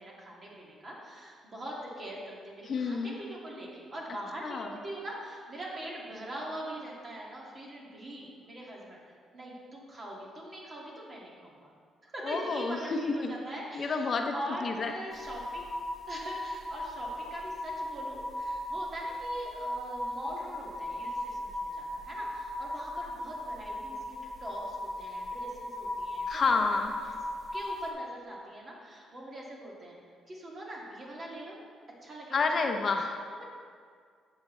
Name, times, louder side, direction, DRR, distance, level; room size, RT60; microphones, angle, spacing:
voice 1, 0.0-11.7 12.0-15.7 16.1-26.4 27.5-29.9 30.3-31.6 32.0-32.4 33.3-33.5, right 1 dB, 35° right, -4 dB, 2.4 m, -42 dB
voice 2, 2.7-3.2 4.4-4.7 12.2-13.3 13.7-14.3 14.6-14.9 26.3-26.9 32.3-33.2, left 4 dB, 45° left, 4 dB, 0.7 m, -29 dB
sound 1, 15.1-27.9, left 1 dB, 5° left, 2.2 m, -37 dB
11.5 x 7.4 x 3.3 m, 2.1 s
cardioid pair, 90°, 0 cm